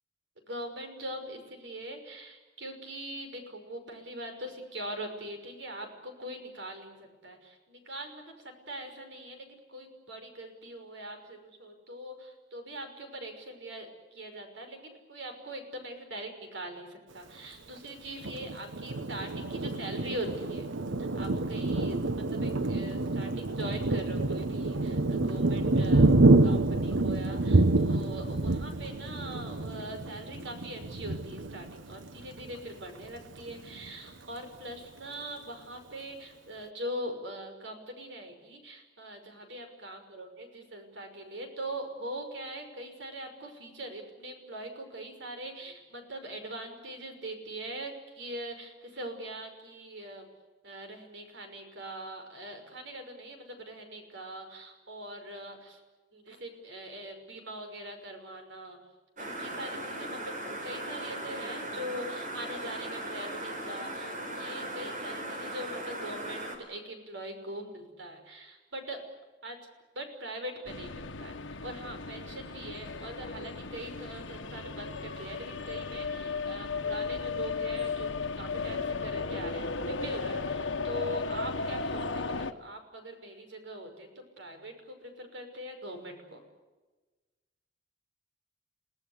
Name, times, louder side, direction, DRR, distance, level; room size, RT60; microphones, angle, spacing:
voice 1, 0.5-7.0 7.2-20.7 21.1-26.1 26.4-50.3 50.6-55.8 56.1-58.8 59.2-69.0 69.4-69.6 69.9-71.4 71.6-84.1 84.4-86.4, right 1 dB, 70° right, 5 dB, 5.9 m, -42 dB
Thunder, 18.2-32.5 33.0-33.2 33.5-34.1, right 2 dB, 90° right, 1.1 m, -27 dB
sound 1, 59.2-66.6, right 1 dB, 45° right, 4.6 m, -38 dB
sound 2, 70.6-82.5, left 4 dB, 85° left, 1.3 m, -35 dB
29.5 x 18.5 x 8.2 m, 1.2 s
head